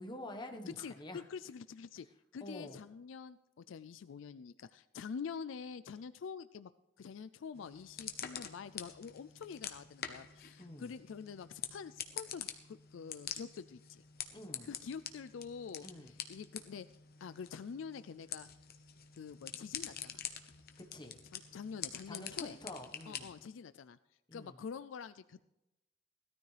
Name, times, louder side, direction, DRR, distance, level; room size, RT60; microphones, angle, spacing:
voice 1, 0.0-1.2 2.4-2.8 10.6-10.9 14.3-14.7 15.8-16.1 20.8-21.2 22.1-23.3 24.3-24.6, left 1 dB, 25° left, 4 dB, 1.3 m, -48 dB
voice 2, 0.7-2.1 2.3-6.7 7.0-14.0 14.6-16.9 17.2-18.5 19.2-20.2 21.3-22.6 23.1-24.0 24.3-25.4, left 6 dB, 75° left, 13 dB, 0.4 m, -46 dB
sound 1, 7.5-23.5, left 9 dB, 55° left, 1.1 m, -46 dB
17.5 x 13.0 x 3.3 m, 0.93 s
head